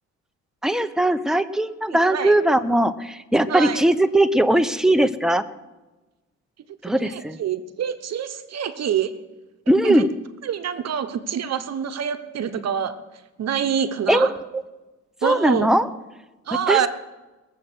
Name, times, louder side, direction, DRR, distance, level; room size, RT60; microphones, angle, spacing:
voice 1, 0.6-5.4 6.8-7.4 9.7-10.1 14.1-14.3 14.5-14.6 15.2-15.9 16.7-16.9, right 1 dB, ahead, 10 dB, 0.8 m, -19 dB
voice 2, 3.5-3.8 7.0-9.1 9.8-10.0 10.4-12.9 13.4-14.3 15.2-15.8 16.5-16.9, right 8 dB, 60° right, 10 dB, 1.1 m, -26 dB
21.0 x 7.8 x 6.3 m, 1.1 s
cardioid pair, 90°, 30 cm